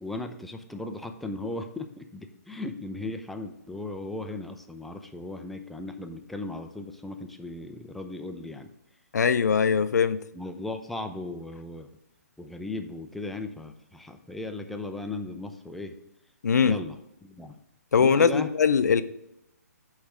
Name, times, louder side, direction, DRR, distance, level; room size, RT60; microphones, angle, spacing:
voice 1, 0.0-8.7 10.3-11.9 12.4-16.0 16.6-17.6 18.0-18.5, left 2 dB, ahead, 5 dB, 0.3 m, -37 dB
voice 2, 9.1-10.2 16.4-16.8 17.9-19.0, left 6 dB, 80° left, 13 dB, 0.5 m, -21 dB
8.2 x 3.2 x 6.1 m, 0.81 s
hypercardioid pair, 150°, 9 cm